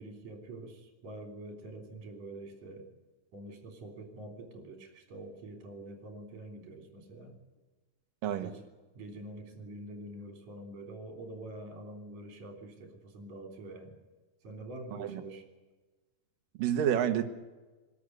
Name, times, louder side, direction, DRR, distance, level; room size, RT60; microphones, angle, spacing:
voice 1, 0.0-2.9 3.3-7.3 8.4-8.6 9.0-14.0 14.4-15.5, right 2 dB, 55° right, 4 dB, 4.5 m, -46 dB
voice 2, 16.6-17.2, right 10 dB, 75° right, 7 dB, 2.9 m, -28 dB
24.0 x 13.0 x 9.3 m, 1.2 s
omnidirectional pair, 4.0 m